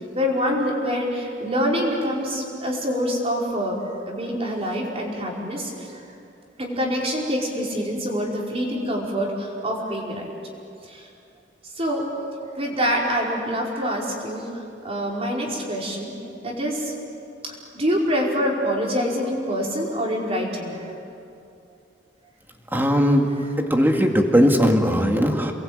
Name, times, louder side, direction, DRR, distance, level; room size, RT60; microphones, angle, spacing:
voice 1, 0.1-3.8 4.1-6.0 6.6-10.3 10.8-11.1 11.8-12.0 12.5-16.1 16.4-16.9 17.4-20.9, equal, 35° right, -2 dB, 5.1 m, -26 dB
voice 2, 22.7-23.3 23.6-25.5, equal, 10° right, 3 dB, 2.2 m, -18 dB
28.5 x 22.0 x 8.9 m, 2.5 s
head